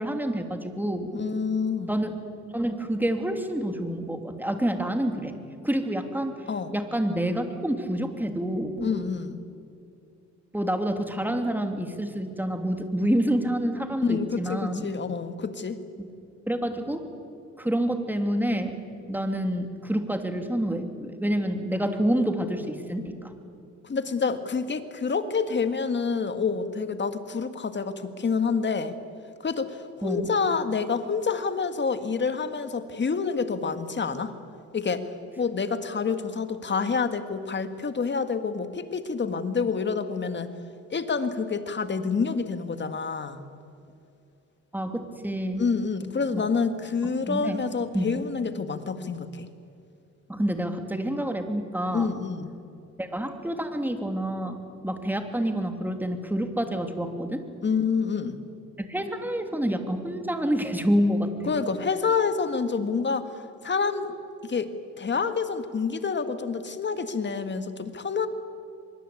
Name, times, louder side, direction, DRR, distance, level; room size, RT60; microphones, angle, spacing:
voice 1, 0.0-1.1 1.9-2.2 2.5-5.4 5.6-6.3 6.7-9.0 10.5-14.9 16.0-16.1 16.5-17.0 17.6-18.8 19.1-23.3 30.0-30.3 44.7-45.6 46.3-46.4 47.3-47.6 47.9-48.1 50.3-52.1 53.0-54.6 54.8-57.4 58.8-61.6, right 1 dB, 5° right, 6 dB, 2.9 m, -28 dB
voice 2, 1.1-1.9 6.5-6.7 8.8-9.4 14.0-15.8 23.8-28.9 29.4-34.3 34.7-35.1 35.4-40.5 40.9-43.4 45.6-49.5 51.9-52.5 57.6-58.4 61.5-63.3 63.6-64.1 64.4-64.7 65.0-68.3, left 5 dB, 35° left, 9 dB, 1.9 m, -28 dB
24.0 x 22.0 x 8.6 m, 2.6 s
cardioid pair, 90°, 30 cm